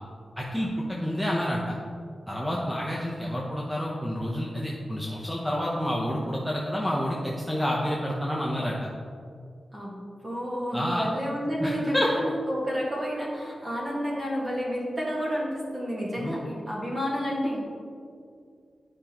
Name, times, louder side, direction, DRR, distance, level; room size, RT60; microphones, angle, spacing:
voice 1, 0.4-1.7 2.3-8.9 10.7-11.0 11.6-12.1 16.2-16.4, equal, ahead, -4 dB, 0.7 m, -29 dB
voice 2, 10.2-17.7, equal, 25° right, -4 dB, 1.6 m, -30 dB
11.5 x 5.1 x 2.9 m, 2.3 s
wide cardioid pair, 165°, 0 cm